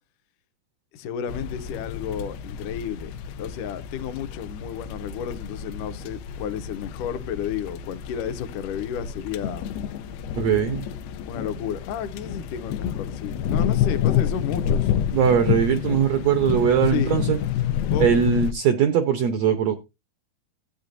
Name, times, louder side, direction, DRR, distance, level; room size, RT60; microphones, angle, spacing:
voice 1, 0.9-3.1 3.4-9.7 11.3-14.9 16.9-17.2 17.9-18.1, left 8 dB, 75° left, 2.1 m, -32 dB
sound 1, 1.3-18.5, left 9 dB, 90° left, 2.5 m, -28 dB
voice 2, 10.4-10.8 15.1-17.4 18.0-19.7, right 8 dB, 90° right, 1.5 m, -20 dB
16.0 x 8.5 x 2.6 m
omnidirectional pair, 4.2 m